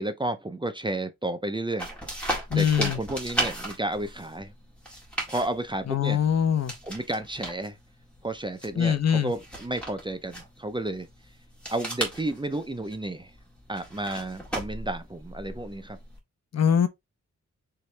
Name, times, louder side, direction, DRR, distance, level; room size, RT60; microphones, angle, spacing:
voice 1, 0.0-1.9 2.5-4.5 5.3-6.2 6.8-7.8 8.2-11.1 11.7-13.3 13.7-16.0, right 1 dB, 15° right, 0.5 m, -32 dB
sound 1, 1.8-16.2, right 1 dB, 5° left, 1.7 m, -37 dB
voice 2, 2.5-3.0 5.9-6.7 8.8-9.3 16.5-16.9, left 8 dB, 60° left, 0.7 m, -23 dB
4.6 x 3.1 x 3.2 m
wide cardioid pair, 135°, 30 cm